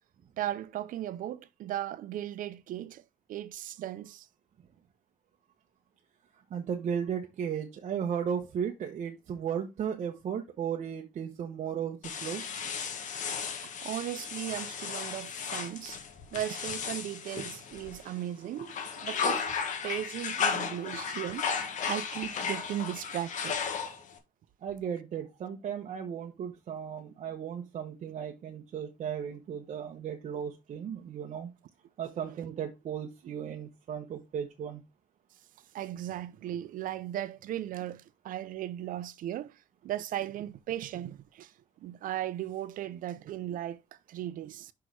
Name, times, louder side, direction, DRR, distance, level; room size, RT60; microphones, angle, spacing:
voice 1, 0.4-3.0 3.3-4.3 13.6-16.0 16.3-18.8 19.0-19.5 19.8-21.5 21.9-23.6 32.2-32.5 33.2-33.3 35.7-41.5 41.8-44.7, right 12 dB, 80° right, 0.6 m, -37 dB
voice 2, 6.5-12.4 18.6-18.7 24.6-31.5 32.0-34.8, right 8 dB, 60° right, 1.1 m, -35 dB
sound 1, 12.0-18.2 18.6-24.2, left 6 dB, 65° left, 1.7 m, -35 dB
6.2 x 5.8 x 4.7 m
cardioid pair, 135°, 14 cm